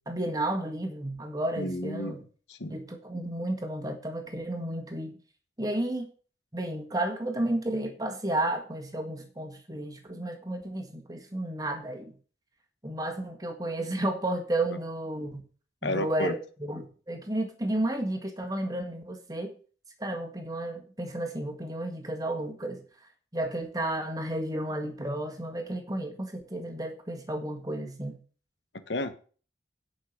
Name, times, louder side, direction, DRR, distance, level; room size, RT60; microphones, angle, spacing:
voice 1, 0.0-2.2 2.7-5.2 5.6-6.1 6.5-12.1 12.8-15.4 15.8-19.6 20.0-22.8 23.3-28.2, right 1 dB, 20° right, 5 dB, 1.7 m, -32 dB
voice 2, 1.6-2.2 2.5-2.7 15.8-16.4 28.9-29.1, left 1 dB, 80° left, 10 dB, 1.3 m, -31 dB
10.0 x 5.7 x 7.3 m, 0.40 s
head